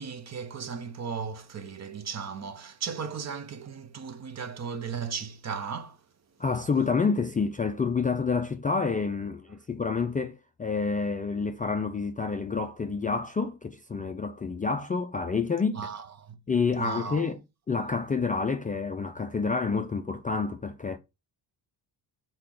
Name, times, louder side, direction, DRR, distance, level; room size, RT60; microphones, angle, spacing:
voice 1, 0.0-6.0 15.7-16.4 16.7-17.3, right 6 dB, 35° right, 0.8 m, -36 dB
voice 2, 6.4-15.8 16.5-17.4 17.7-21.0, left 4 dB, 20° left, 0.4 m, -28 dB
6.7 x 4.2 x 3.8 m
cardioid pair, 165°, 44 cm